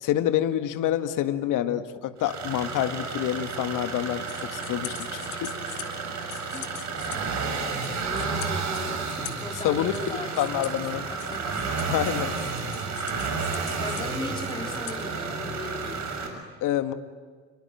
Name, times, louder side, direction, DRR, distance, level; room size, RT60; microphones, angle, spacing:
voice 1, 0.0-5.5 9.6-9.9 10.4-11.1 11.9-12.4 16.6-16.9, left 12 dB, 55° left, 9 dB, 1.8 m, -27 dB
sound 1, 2.2-16.3, right 4 dB, 50° right, 6.7 m, -31 dB
sound 2, 3.9-15.4, left 11 dB, 75° left, 2.5 m, -44 dB
voice 2, 7.5-11.7 13.8-16.0, left 2 dB, 15° left, 3 dB, 4.0 m, -39 dB
28.5 x 23.0 x 9.1 m, 1.5 s
hypercardioid pair, 65°, 38 cm